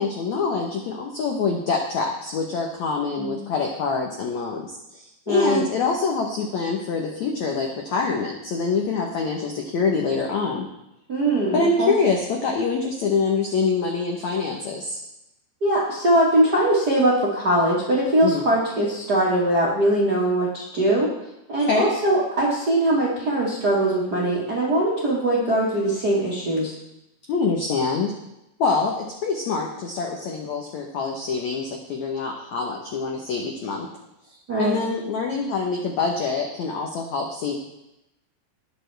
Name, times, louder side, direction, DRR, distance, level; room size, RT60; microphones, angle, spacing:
voice 1, 0.0-10.7 11.5-15.0 18.2-18.5 21.7-21.9 27.3-28.1 28.6-33.9 34.3-37.6, left 4 dB, 85° left, 1 dB, 1.6 m, -25 dB
voice 2, 5.3-5.6 11.1-11.9 15.6-21.1 21.5-26.7 34.5-34.8, right 1 dB, 55° right, -6 dB, 1.1 m, -21 dB
19.5 x 6.9 x 3.4 m, 0.89 s
omnidirectional pair, 4.8 m